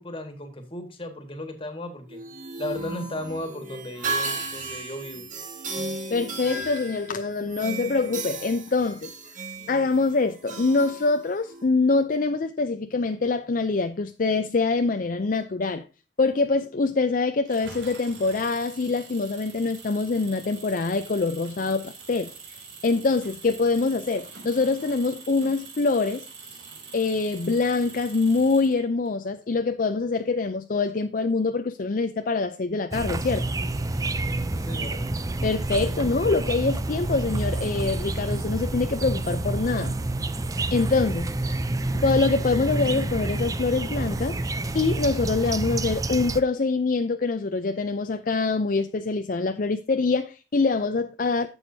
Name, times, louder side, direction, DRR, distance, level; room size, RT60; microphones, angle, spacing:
voice 1, 0.0-2.2 2.6-5.2 34.5-35.0, left 1 dB, 30° left, 1.7 m, -35 dB
sound 1, 2.1-11.6, right 3 dB, 45° right, 1.8 m, -35 dB
voice 2, 5.8-9.1 9.7-15.8 16.2-22.3 22.8-26.2 26.9-33.4 35.4-39.9 40.7-41.6 41.9-44.4 44.7-51.5, left 3 dB, 50° left, 0.5 m, -24 dB
Engine, 17.4-29.1, right 5 dB, 90° right, 3.0 m, -44 dB
sound 2, 32.9-46.4, right 2 dB, 20° right, 0.5 m, -28 dB
11.0 x 7.9 x 2.7 m
head